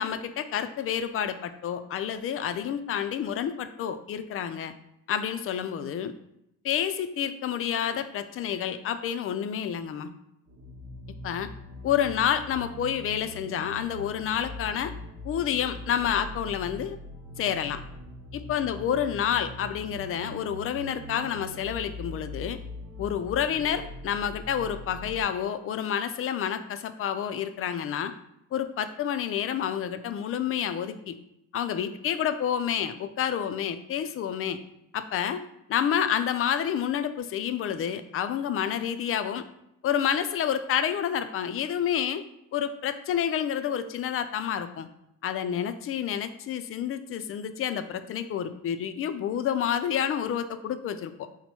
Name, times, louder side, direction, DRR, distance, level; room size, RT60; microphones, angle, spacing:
voice 1, 0.0-4.7 5.1-6.1 6.6-10.1 11.2-11.5 11.8-14.9 15.2-17.0 17.4-17.8 18.3-22.6 23.0-28.1 28.5-31.2 31.5-34.6 34.9-35.4 35.7-39.4 39.8-42.2 42.5-44.9 45.2-51.3, left 9 dB, 45° left, 11 dB, 0.4 m, -29 dB
sound 1, 10.5-25.2, left 1 dB, 60° right, 1.0 m, -42 dB
4.1 x 2.2 x 4.3 m, 0.81 s
supercardioid pair, 85°, 32 cm